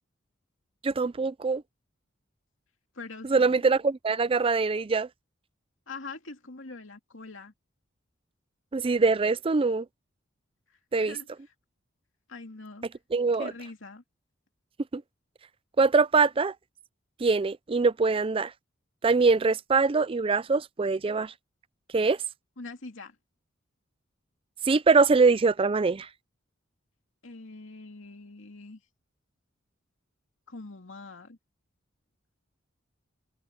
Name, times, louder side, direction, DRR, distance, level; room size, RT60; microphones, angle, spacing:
voice 1, 0.8-1.6 3.3-5.1 8.7-9.9 10.9-11.2 13.1-13.5 14.9-15.0 15.8-16.5 17.2-18.5 19.0-21.3 21.9-22.2 24.7-26.1, right 4 dB, 30° right, 0.4 m, -23 dB
voice 2, 2.9-3.6 5.9-7.5 10.7-11.3 12.3-12.9 13.4-14.0 22.6-23.2 27.2-28.8 30.5-31.4, left 3 dB, 75° left, 2.6 m, -43 dB
open air
head